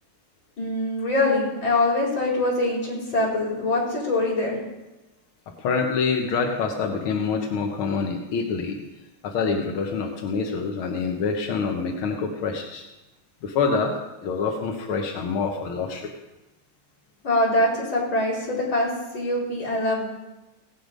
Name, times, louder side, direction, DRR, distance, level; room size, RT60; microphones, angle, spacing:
voice 1, 0.6-4.6 17.2-18.9 19.1-20.1, left 2 dB, 35° left, -4 dB, 4.9 m, -23 dB
voice 2, 5.6-8.8 9.2-12.8 13.4-13.9 14.2-16.1, left 5 dB, 60° left, 2 dB, 1.4 m, -26 dB
17.0 x 10.0 x 5.2 m, 1.0 s
omnidirectional pair, 3.8 m